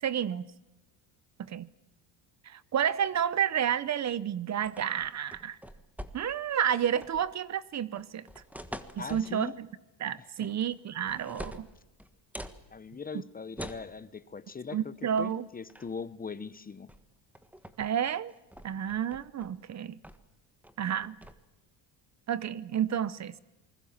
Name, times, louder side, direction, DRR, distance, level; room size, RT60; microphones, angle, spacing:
voice 1, 0.0-0.4 1.4-1.7 2.5-5.6 6.1-8.3 9.0-9.7 10.0-11.7 14.7-15.5 17.8-18.3 18.6-20.0 20.8-21.2 22.3-23.3, right 9 dB, 40° right, 0.9 m, -30 dB
sound 1, 4.6-6.5 6.8-7.3 8.0-9.4 10.4-10.8 11.1-12.6 13.6-13.9 15.2-15.4 15.7-16.0 16.9-17.0 17.4-17.9 18.3-19.5 20.0-20.3 20.6-21.3, equal, 5° right, 1.5 m, -45 dB
voice 2, 9.0-9.5 10.2-10.5 12.7-16.9, left 5 dB, 20° left, 0.9 m, -41 dB
27.5 x 20.5 x 7.3 m
cardioid pair, 120°, 44 cm